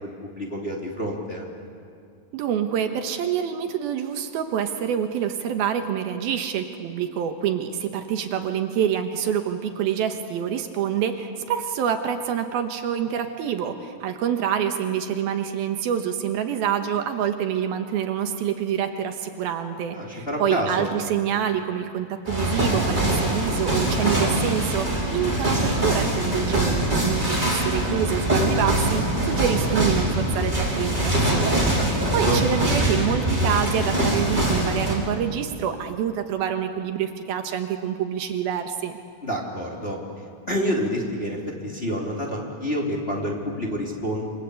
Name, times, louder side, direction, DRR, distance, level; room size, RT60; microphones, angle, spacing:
voice 1, 0.0-1.4 19.9-20.9 31.7-32.4 39.2-40.0 40.5-44.2, equal, 15° left, -1 dB, 3.0 m, -28 dB
voice 2, 2.3-31.7 32.1-39.0, right 9 dB, 75° right, 6 dB, 3.0 m, -27 dB
sound 1, 22.2-34.9, right 1 dB, 10° right, 5.4 m, -23 dB
28.0 x 25.5 x 8.3 m, 2.4 s
omnidirectional pair, 4.6 m